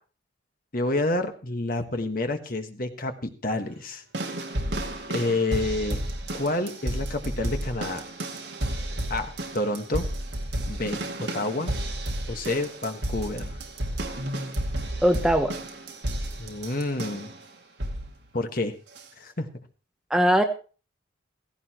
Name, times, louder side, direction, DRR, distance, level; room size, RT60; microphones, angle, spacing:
voice 1, 0.7-4.0 5.1-6.0 6.3-8.0 9.1-10.1 10.7-11.7 12.3-13.6 16.4-17.3 18.3-18.7 19.2-19.5, left 2 dB, 45° left, 6 dB, 1.5 m, -29 dB
sound 1, 4.1-17.4 17.8-18.2 19.0-19.1, right 1 dB, 60° right, 2.2 m, -32 dB
voice 2, 15.0-15.5 20.1-20.4, equal, 5° right, 5 dB, 0.9 m, -20 dB
16.0 x 16.0 x 3.0 m, 0.36 s
head